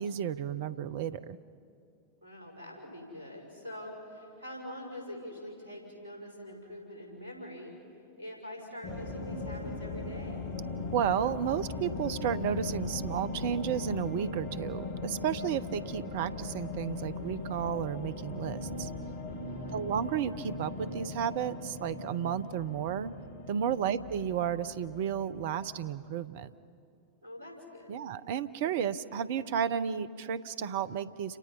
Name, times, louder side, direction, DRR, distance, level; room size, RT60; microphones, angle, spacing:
voice 1, 0.0-1.4 10.9-18.9 19.7-23.1 23.5-26.5 27.9-31.4, right 8 dB, 50° right, 14 dB, 0.8 m, -32 dB
voice 2, 2.2-7.7 8.2-10.4 19.3-19.8 23.7-23.9 27.2-27.9, left 1 dB, 75° right, 1 dB, 6.5 m, -45 dB
sound 1, 8.8-25.9, left 3 dB, 55° left, 2.1 m, -39 dB
30.0 x 27.0 x 5.6 m, 2.6 s
figure-of-eight pair, 90°, 0 cm